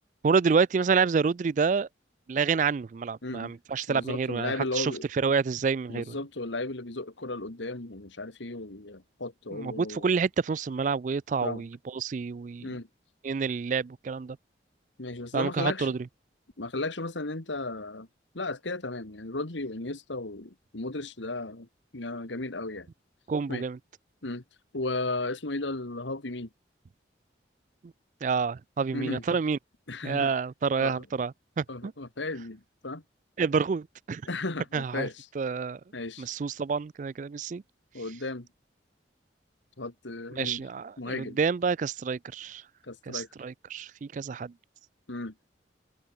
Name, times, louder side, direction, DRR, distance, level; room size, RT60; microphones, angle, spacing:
voice 1, 0.2-1.9 2.3-6.2 9.5-12.8 13.2-14.4 15.3-16.0 23.3-23.8 27.8-27.9 28.2-29.6 30.0-31.9 33.4-34.2 34.7-35.1 35.4-35.8 36.2-37.6 40.4-42.6 43.1-44.5, right 5 dB, 40° right, 0.3 m, -28 dB
voice 2, 3.2-3.5 3.9-5.1 5.9-10.0 11.4-11.6 12.6-12.9 15.0-15.9 16.6-18.1 18.3-21.7 21.9-22.9 23.5-23.6 24.2-24.4 24.7-26.5 28.9-29.2 29.9-30.3 30.8-31.1 31.7-33.0 34.3-35.3 35.9-36.3 37.9-38.5 39.8-40.6 41.0-41.4 42.8-43.3 45.1-45.3, left 2 dB, 80° left, 2.0 m, -35 dB
open air
head